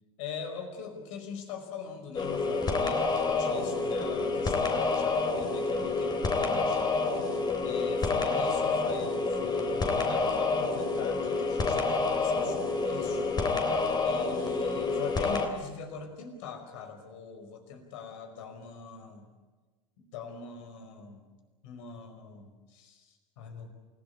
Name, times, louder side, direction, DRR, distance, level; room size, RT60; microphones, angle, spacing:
voice 1, 0.2-13.4 14.0-19.3 20.0-21.2 21.6-23.7, left 6 dB, 60° left, 5 dB, 5.2 m, -42 dB
sound 1, 2.1-15.5, left 3 dB, 25° left, 3.4 m, -28 dB
28.0 x 17.5 x 8.5 m, 1.3 s
hypercardioid pair, 85°, 18 cm